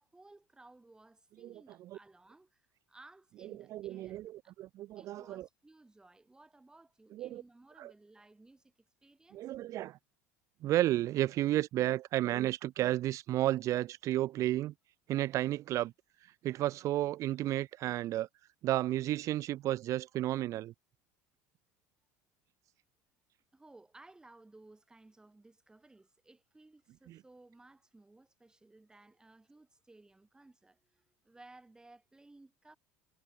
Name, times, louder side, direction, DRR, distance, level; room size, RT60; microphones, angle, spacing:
voice 1, 0.0-4.2 4.4-4.5 4.9-9.5 23.5-32.8, right 2 dB, 10° right, 5.0 m, -59 dB
voice 2, 1.4-2.0 3.4-5.5 7.1-7.4 7.8-7.9 9.3-10.0 10.6-14.7 15.1-15.9 16.4-18.3 18.6-20.7 27.1-27.2, right 14 dB, 50° right, 0.4 m, -32 dB
supercardioid pair, 100°, 7 cm